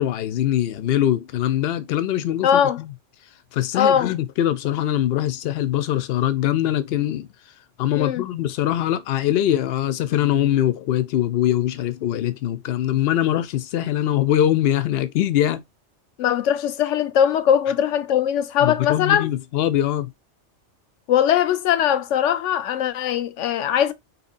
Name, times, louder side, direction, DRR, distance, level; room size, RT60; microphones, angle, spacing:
voice 1, 0.0-2.9 3.5-7.3 7.8-15.6 18.6-20.1, left 12 dB, 65° left, 0.8 m, -22 dB
voice 2, 2.4-2.8 3.7-4.1 8.0-8.2 16.2-19.3 21.1-23.9, left 9 dB, 85° left, 0.9 m, -20 dB
4.2 x 2.9 x 2.5 m
omnidirectional pair, 1.2 m